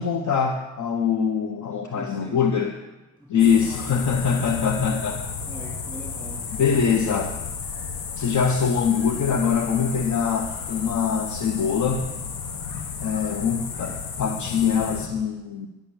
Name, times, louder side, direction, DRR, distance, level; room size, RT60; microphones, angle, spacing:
voice 1, 0.0-2.7 3.3-5.2 6.5-7.4 8.2-12.1 13.0-15.7, left 6 dB, 60° left, 5 dB, 0.9 m, -23 dB
voice 2, 1.8-2.7 3.2-4.6 4.9-5.0 5.5-6.5, right 1 dB, 5° left, -3 dB, 2.8 m, -43 dB
sound 1, 3.4-15.1, left 5 dB, 90° left, 1.0 m, -33 dB
11.0 x 6.3 x 7.0 m, 1.1 s
supercardioid pair, 50°, 33 cm